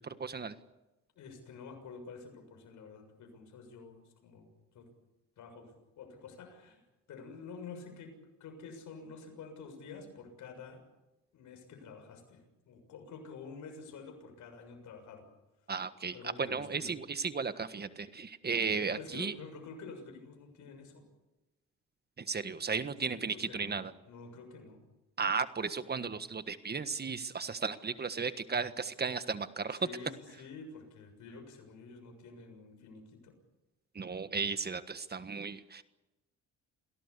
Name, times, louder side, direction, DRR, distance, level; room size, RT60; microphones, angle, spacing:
voice 1, 0.1-0.5 15.7-19.3 22.2-23.9 25.2-29.8 33.9-35.8, right 5 dB, 35° right, 11 dB, 1.5 m, -35 dB
voice 2, 1.1-4.5 4.7-4.9 5.4-6.8 7.1-10.8 11.3-15.3 16.1-16.9 18.5-21.0 23.1-23.8 24.0-24.8 29.7-33.3, left 4 dB, 75° left, 6 dB, 6.9 m, -49 dB
27.5 x 17.5 x 8.3 m, 1.0 s
cardioid pair, 90°, 30 cm